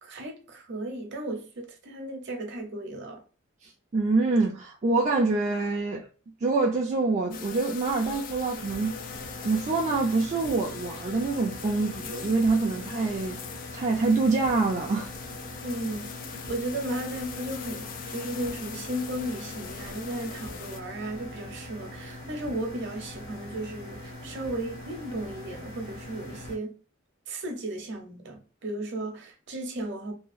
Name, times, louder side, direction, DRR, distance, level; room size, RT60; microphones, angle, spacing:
voice 1, 0.0-3.2 15.6-16.2 16.5-26.8 27.3-30.1, right 1 dB, 55° right, 0.7 m, -35 dB
voice 2, 3.6-6.1 6.4-8.9 9.4-13.4 13.7-15.1, right 3 dB, 35° right, 0.4 m, -25 dB
sound 1, 7.3-20.8, left 7 dB, 40° left, 0.3 m, -41 dB
sound 2, 8.5-26.5, left 1 dB, 65° left, 0.9 m, -42 dB
2.8 x 2.3 x 2.4 m
head